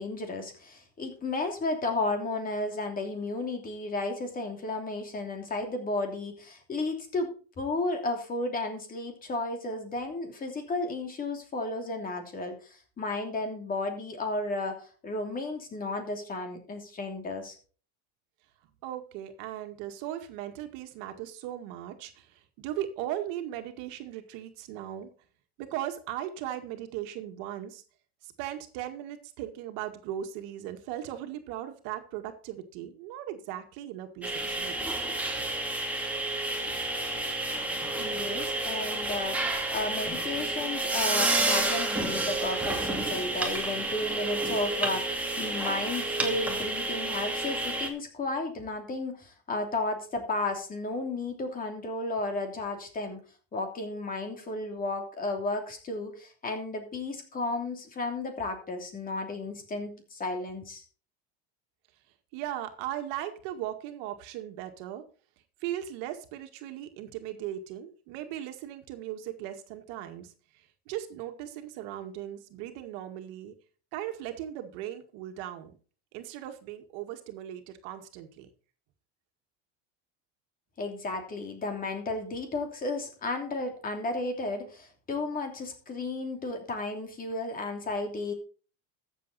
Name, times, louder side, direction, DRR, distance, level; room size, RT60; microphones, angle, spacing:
voice 1, 0.0-17.6 38.0-53.2 53.5-60.8 80.8-88.3, left 2 dB, 25° left, 4 dB, 3.0 m, -33 dB
voice 2, 18.8-25.1 25.6-27.8 28.2-34.8 62.3-65.0 65.6-73.5 73.9-75.7 76.1-78.5, right 12 dB, 75° right, 6 dB, 2.0 m, -38 dB
sound 1, 34.2-47.9, right 2 dB, 5° right, 2.4 m, -30 dB
13.5 x 7.6 x 4.2 m, 0.39 s
cardioid pair, 140°, 33 cm